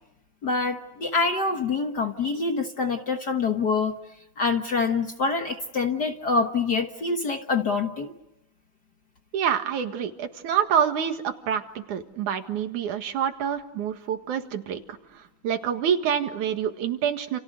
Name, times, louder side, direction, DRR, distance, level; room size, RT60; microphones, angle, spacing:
voice 1, 0.4-4.0 4.4-8.1, left 4 dB, 45° left, 5 dB, 1.4 m, -25 dB
voice 2, 9.3-14.8 15.4-17.4, right 8 dB, 90° right, 7 dB, 3.1 m, -27 dB
30.0 x 28.5 x 6.6 m, 0.87 s
omnidirectional pair, 3.4 m